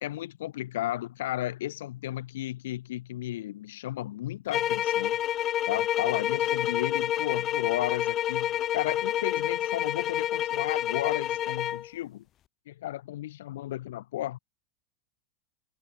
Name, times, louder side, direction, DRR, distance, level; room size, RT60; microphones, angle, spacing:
voice 1, 0.0-5.2 5.7-12.2 12.7-14.4, left 14 dB, 85° left, 2.8 m, -34 dB
sound 1, 4.5-11.9, left 12 dB, 40° left, 1.0 m, -28 dB
supercardioid pair, 125°, 0 cm